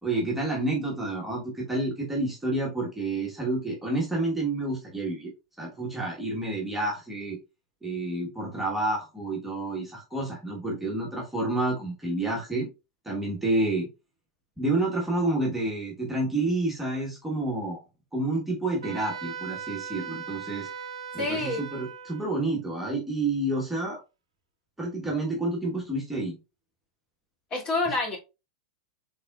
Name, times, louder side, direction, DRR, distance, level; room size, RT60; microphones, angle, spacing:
voice 1, 0.0-5.3 5.6-7.4 7.8-12.7 13.0-13.9 14.6-17.8 18.1-20.7 21.1-24.0 24.8-26.4, right 2 dB, 5° right, 1.3 m, -29 dB
Wind instrument woodwind instrument, 18.8-22.3, right 7 dB, 75° right, 0.5 m, -38 dB
voice 2, 21.2-21.6 27.5-28.2, left 2 dB, 30° left, 2.1 m, -27 dB
4.0 x 3.8 x 2.3 m
figure-of-eight pair, 95°, 3 cm